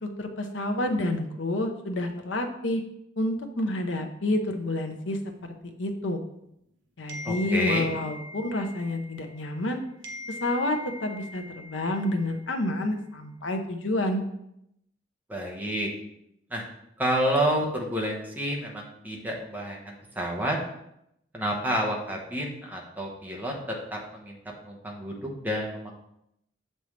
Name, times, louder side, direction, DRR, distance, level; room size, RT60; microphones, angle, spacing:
voice 1, 0.0-2.8 3.2-5.2 5.6-6.2 7.0-9.8 10.4-14.2, left 1 dB, 85° left, 5 dB, 0.8 m, -29 dB
sound 1, 7.1-9.7 10.0-12.6, left 2 dB, 85° right, 0.8 m, -42 dB
voice 2, 7.2-7.9 15.3-15.9 16.5-16.6 17.0-20.6 21.3-24.4 24.6-26.0, equal, 10° right, -1 dB, 1.1 m, -29 dB
6.9 x 5.5 x 3.2 m, 0.79 s
head